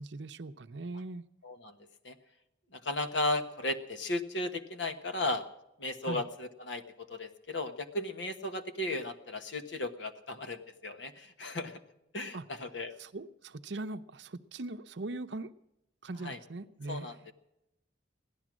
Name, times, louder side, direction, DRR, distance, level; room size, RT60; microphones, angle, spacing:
voice 1, 0.0-1.2 6.0-6.3 12.3-12.5 13.0-15.5 16.0-17.3, right 2 dB, 65° right, 11 dB, 0.7 m, -40 dB
voice 2, 1.4-1.7 2.0-2.1 2.7-5.5 5.8-11.8 12.1-12.9 16.2-16.4 16.9-17.1, left 2 dB, 70° left, 8 dB, 1.3 m, -35 dB
16.5 x 12.0 x 6.2 m, 0.86 s
head